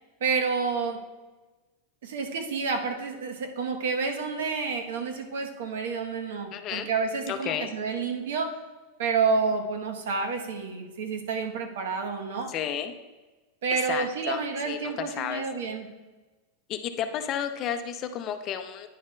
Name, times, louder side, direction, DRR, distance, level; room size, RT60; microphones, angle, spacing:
voice 1, 0.2-1.0 2.0-8.6 9.0-12.5 13.6-15.9, right 5 dB, 85° right, 5 dB, 0.9 m, -29 dB
voice 2, 6.5-6.9 7.3-7.7 12.5-12.9 13.7-15.4 16.7-18.9, left 9 dB, 30° left, 8 dB, 0.5 m, -32 dB
9.7 x 6.6 x 2.2 m, 1.2 s
supercardioid pair, 160°, 0 cm